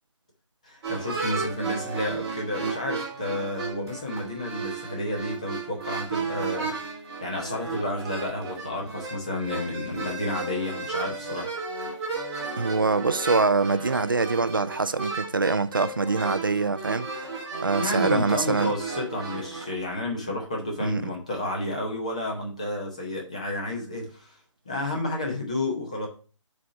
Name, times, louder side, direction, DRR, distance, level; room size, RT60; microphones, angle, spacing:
voice 1, 0.6-6.7 7.2-11.5 17.8-24.3 24.6-26.1, left 1 dB, 15° left, 0.7 m, -31 dB
sound 1, 0.8-19.8, right 4 dB, 10° right, 1.3 m, -33 dB
voice 2, 12.5-17.1 17.6-18.7 20.8-21.1, right 4 dB, 45° right, 0.4 m, -24 dB
6.1 x 4.2 x 5.6 m
hypercardioid pair, 180°, 16 cm